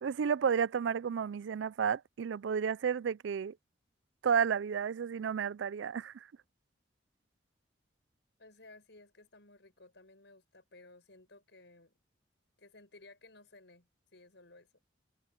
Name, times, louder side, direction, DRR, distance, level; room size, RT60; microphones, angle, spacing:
voice 1, 0.0-3.6 4.2-6.3, right 7 dB, 85° right, 0.4 m, -32 dB
voice 2, 8.4-11.9 12.6-14.7, left 2 dB, 70° left, 6.5 m, -57 dB
head